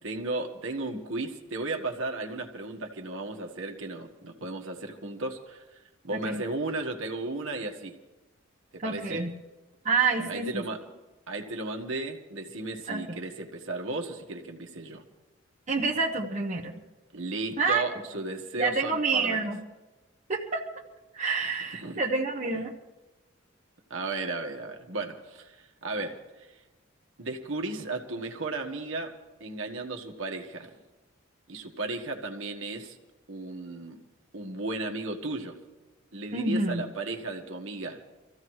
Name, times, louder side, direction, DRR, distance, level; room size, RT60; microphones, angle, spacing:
voice 1, 0.0-8.0 8.7-9.2 10.2-10.8 11.3-15.0 17.1-19.5 21.7-22.0 22.5-22.6 23.9-26.6 27.2-29.1 29.4-30.7 31.5-33.0 33.3-34.0 34.3-35.6 36.1-38.0, right 2 dB, 75° right, 2 dB, 1.5 m, -35 dB
voice 2, 6.1-6.4 8.8-9.3 9.8-10.6 12.9-13.2 15.7-16.7 17.6-17.8 18.6-19.6 20.3-20.6 21.1-22.7 36.3-36.8, right 4 dB, 35° right, -1 dB, 1.0 m, -28 dB
25.5 x 15.0 x 3.2 m, 1.1 s
head